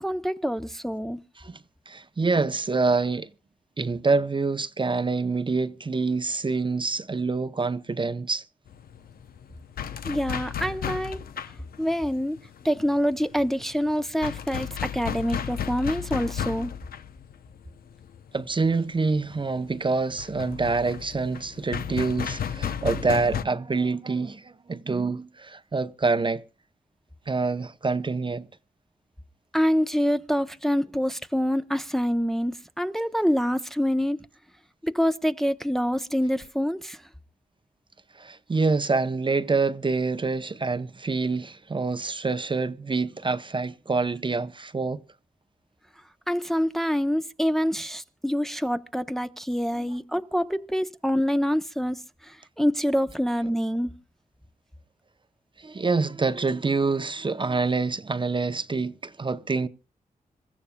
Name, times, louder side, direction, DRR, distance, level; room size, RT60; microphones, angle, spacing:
voice 1, 0.0-1.2 10.0-11.2 11.8-12.4 12.6-16.7 29.5-34.2 34.8-37.0 46.3-53.9, equal, ahead, 0.7 m, -26 dB
voice 2, 1.9-3.3 3.8-8.4 18.3-26.4 27.3-28.5 38.2-45.0 49.8-49.9 55.6-59.7, right 4 dB, 35° right, 0.7 m, -26 dB
sound 1, 8.7-23.4, left 8 dB, 90° left, 0.6 m, -34 dB
26.5 x 14.0 x 2.2 m
cardioid pair, 60°, 15 cm